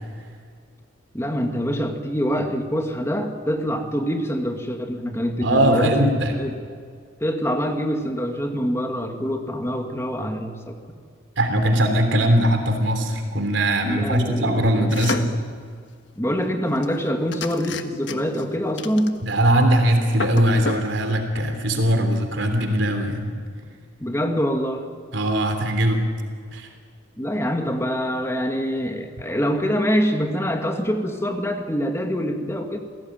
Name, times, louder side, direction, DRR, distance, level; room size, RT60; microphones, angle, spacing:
voice 1, 1.1-6.6 7.2-11.0 13.8-15.4 16.2-19.2 24.0-24.9 27.2-32.8, equal, 15° left, 4 dB, 2.0 m, -25 dB
voice 2, 5.4-6.3 11.4-15.3 19.2-23.3 25.1-26.1 26.5-26.7, right 1 dB, 75° right, 5 dB, 3.3 m, -20 dB
sound 1, 14.9-15.4 16.8-17.0 17.3-18.4 18.8-19.5 19.8-19.9 20.1-20.9, left 3 dB, 65° left, 1.5 m, -30 dB
28.5 x 17.0 x 9.2 m, 2.1 s
head